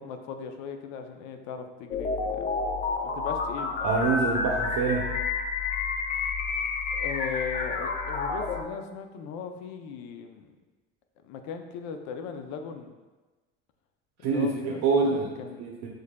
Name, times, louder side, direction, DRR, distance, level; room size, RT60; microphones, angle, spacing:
voice 1, 0.0-2.5 3.0-3.9 6.9-10.5 11.2-12.9 14.2-15.6, left 6 dB, 75° left, 6 dB, 0.5 m, -38 dB
sound 1, 1.9-8.6, left 4 dB, 30° left, 0.4 m, -29 dB
voice 2, 3.8-5.1 14.2-15.3 15.6-15.9, right 4 dB, 65° right, -2 dB, 0.7 m, -25 dB
5.1 x 3.9 x 2.2 m, 1.2 s
cardioid pair, 120°, 29 cm